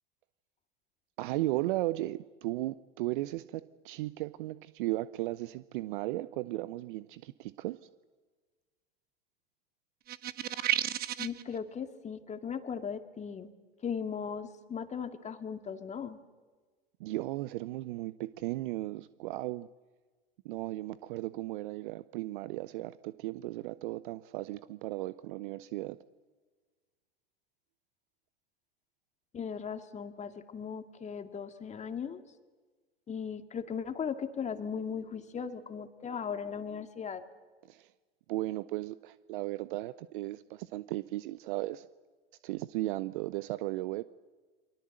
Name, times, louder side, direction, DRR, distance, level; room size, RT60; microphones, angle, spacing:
voice 1, 1.2-7.8 17.0-19.7 20.4-26.0 37.7-37.9 38.3-41.9 42.4-44.0, right 17 dB, 55° right, 16 dB, 0.8 m, -36 dB
sound 1, 10.1-11.4, right 12 dB, 30° right, 1.3 m, -32 dB
voice 2, 11.2-13.5 13.8-16.2 29.3-32.2 33.1-37.2, left 7 dB, 25° left, 8 dB, 2.1 m, -38 dB
29.0 x 24.5 x 7.8 m, 1.4 s
hypercardioid pair, 95°, 30 cm